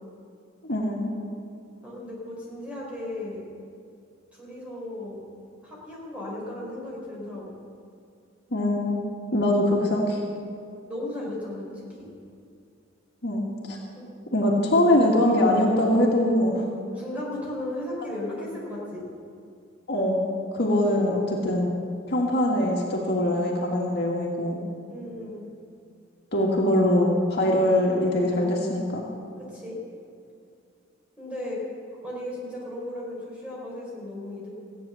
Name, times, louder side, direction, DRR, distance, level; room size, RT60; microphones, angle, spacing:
voice 1, 0.6-1.1 8.5-9.0 9.3-10.2 13.2-13.8 14.3-16.6 19.9-20.3 20.5-21.7 22.1-24.6 26.3-29.0, left 1 dB, 55° left, -2 dB, 1.8 m, -22 dB
voice 2, 1.8-3.4 4.3-5.2 5.6-7.5 10.9-12.1 13.9-14.1 17.0-19.0 20.7-21.0 24.9-25.4 29.5-29.8 31.2-31.6 31.9-34.5, left 1 dB, 5° right, -5 dB, 4.2 m, -35 dB
15.5 x 9.2 x 7.0 m, 2.4 s
head